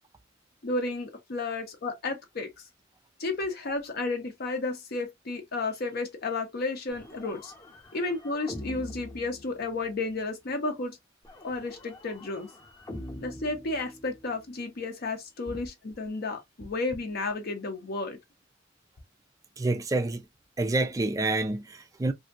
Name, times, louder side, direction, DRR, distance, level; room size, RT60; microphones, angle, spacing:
voice 1, 0.6-2.6 3.2-7.5 7.9-11.0 11.4-12.5 13.2-18.2, left 3 dB, 55° left, 0.6 m, -32 dB
sound 1, 6.9-10.1 11.2-14.5, left 1 dB, 20° left, 0.7 m, -44 dB
voice 2, 19.6-20.3 20.6-22.1, right 2 dB, 20° right, 0.3 m, -28 dB
2.7 x 2.6 x 2.3 m
head